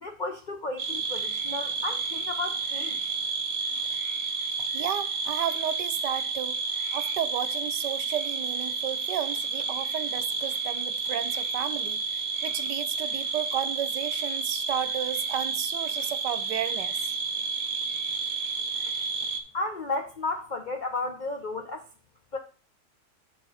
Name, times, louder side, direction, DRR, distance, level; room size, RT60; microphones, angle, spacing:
voice 1, 0.0-3.0 19.5-21.9 22.3-22.4, left 2 dB, 65° left, 0.4 m, -33 dB
sound 1, 0.8-19.4, right 4 dB, 55° right, 0.9 m, -31 dB
voice 2, 4.6-6.5 6.9-17.0, right 11 dB, 85° right, 1.3 m, -33 dB
6.1 x 4.2 x 5.4 m
omnidirectional pair, 1.9 m